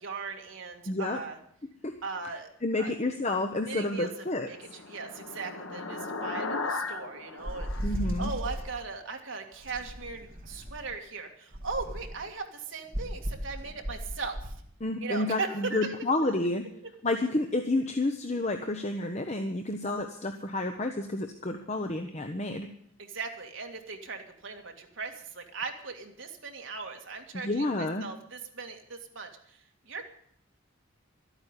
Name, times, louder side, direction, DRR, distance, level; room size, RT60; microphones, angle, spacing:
voice 1, 0.0-1.4 2.0-2.5 2.8-2.9 3.6-4.1 4.5-7.7 8.2-14.5 15.0-15.9 23.0-30.0, right 4 dB, 60° right, 3 dB, 2.1 m, -38 dB
voice 2, 0.9-1.2 1.8-1.9 2.6-4.5 7.8-8.3 14.8-16.6 17.0-22.7 27.3-28.0, left 2 dB, 30° left, 5 dB, 0.9 m, -30 dB
sound 1, 4.1-8.8, left 3 dB, 75° left, 1.4 m, -37 dB
sound 2, 7.4-8.7 9.6-10.9 11.5-12.2 12.9-14.6, equal, 40° right, 2.0 m, -35 dB
12.5 x 9.0 x 9.9 m, 0.67 s
head